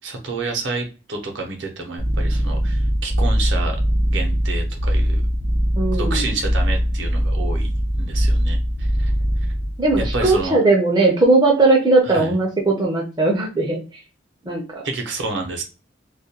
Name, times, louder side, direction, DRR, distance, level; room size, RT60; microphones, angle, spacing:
voice 1, 0.0-3.8 4.1-5.2 5.9-9.1 10.1-10.6 12.1-12.3 14.8-15.6, right 3 dB, 65° right, 3 dB, 0.7 m, -29 dB
sound 1, 2.0-10.5, equal, 55° left, 0.7 m, -21 dB
voice 2, 5.8-6.3 9.8-13.8 14.5-14.8, right 2 dB, 20° right, -1 dB, 0.4 m, -18 dB
2.3 x 2.1 x 2.8 m, 0.32 s
head